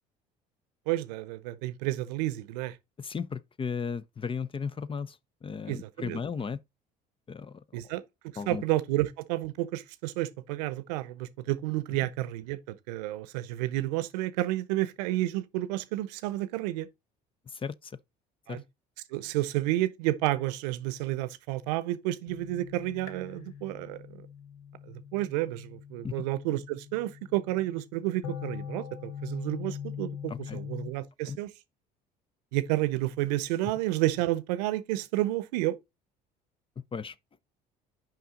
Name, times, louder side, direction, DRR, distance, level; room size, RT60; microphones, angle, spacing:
voice 1, 0.9-2.8 5.7-6.2 7.7-8.0 8.5-16.9 18.5-18.6 19.1-24.3 24.9-31.5 32.5-35.8, right 16 dB, 80° right, 0.7 m, -31 dB
voice 2, 3.0-5.2 5.4-6.6 7.3-7.9 8.4-8.6 17.5-18.0 18.5-18.6 26.0-26.2 30.3-30.6 31.2-31.4 36.8-37.1, left 6 dB, 25° left, 0.5 m, -35 dB
sound 1, 22.3-30.9, left 8 dB, 80° left, 1.1 m, -42 dB
5.8 x 5.3 x 3.8 m
hypercardioid pair, 65°, 21 cm